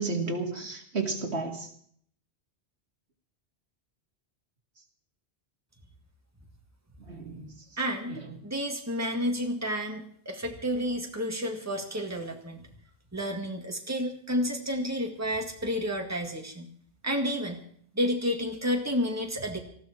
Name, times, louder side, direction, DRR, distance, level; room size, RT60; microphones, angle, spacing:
voice 1, 0.0-1.7 7.0-7.5 8.1-8.4, right 3 dB, 85° right, 3 dB, 2.6 m, -32 dB
voice 2, 7.8-12.6 13.1-16.7 17.0-17.6 17.9-19.6, equal, 15° right, 3 dB, 2.1 m, -30 dB
19.5 x 15.0 x 4.6 m, 0.62 s
omnidirectional pair, 1.1 m